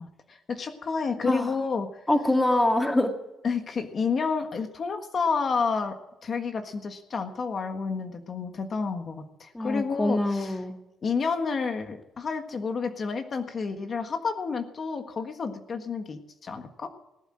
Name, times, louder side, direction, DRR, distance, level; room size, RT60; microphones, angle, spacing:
voice 1, 0.0-1.9 3.4-5.9 6.2-10.6 11.0-16.9, left 5 dB, 45° left, 6 dB, 1.6 m, -30 dB
voice 2, 2.1-3.1 9.5-10.8, left 1 dB, 10° left, 5 dB, 1.9 m, -24 dB
18.5 x 8.3 x 7.7 m, 0.97 s
cardioid pair, 90°, 0 cm